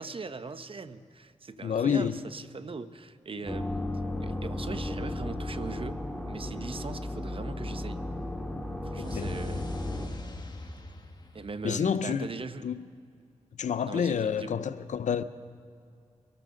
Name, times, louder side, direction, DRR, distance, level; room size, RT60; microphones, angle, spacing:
voice 1, 0.0-3.9 4.2-8.0 8.8-9.7 11.3-12.7 13.8-14.5, right 4 dB, 45° right, 0.8 m, -40 dB
voice 2, 1.6-2.2 9.0-9.3 11.6-12.3 12.6-12.8 13.6-15.2, left 7 dB, 75° left, 0.6 m, -28 dB
sound 1, 3.5-10.1, left 1 dB, 5° left, 2.2 m, -34 dB
sound 2, 8.9-12.1, left 2 dB, 35° left, 1.5 m, -42 dB
23.5 x 13.5 x 3.8 m
cardioid pair, 45°, 13 cm